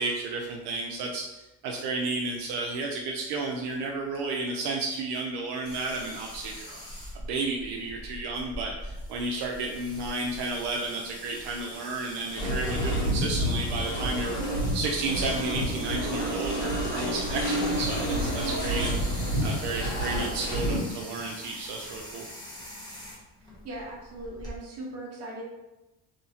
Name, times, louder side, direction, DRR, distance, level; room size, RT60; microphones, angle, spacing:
voice 1, 0.0-14.3 14.7-19.0 19.4-22.2, right 3 dB, 75° right, 0 dB, 0.5 m, -32 dB
sound 1, 5.6-24.6, equal, 10° left, 0.7 m, -43 dB
sound 2, 12.4-20.8, equal, 65° left, 1.4 m, -29 dB
voice 2, 23.6-25.4, right 1 dB, 35° right, -3 dB, 0.9 m, -39 dB
2.7 x 2.7 x 2.7 m, 0.99 s
cardioid pair, 145°, 41 cm